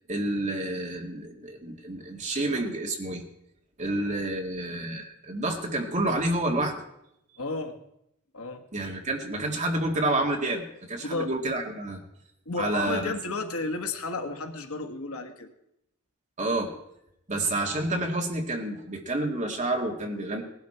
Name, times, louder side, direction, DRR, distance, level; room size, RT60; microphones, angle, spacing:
voice 1, 0.1-3.2 3.8-6.8 8.7-12.0 12.6-13.1 16.4-16.7 17.3-20.4, right 2 dB, 35° right, 1 dB, 2.0 m, -29 dB
voice 2, 7.4-7.8 8.3-8.6 11.0-11.3 12.4-15.5, left 3 dB, 75° left, 5 dB, 1.6 m, -32 dB
19.0 x 11.5 x 4.4 m, 0.80 s
head